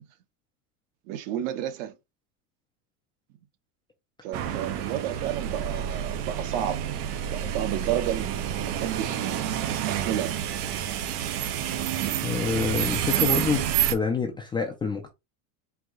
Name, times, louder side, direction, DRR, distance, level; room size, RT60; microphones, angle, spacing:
voice 1, 1.1-1.9 4.2-6.8 7.3-10.3 12.0-12.2, right 11 dB, 60° right, 1.0 m, -31 dB
sound 1, 4.3-14.0, right 10 dB, 80° right, 1.1 m, -29 dB
voice 2, 12.2-15.1, left 5 dB, 10° left, 0.4 m, -27 dB
4.6 x 2.8 x 3.7 m
cardioid pair, 160°, 45 cm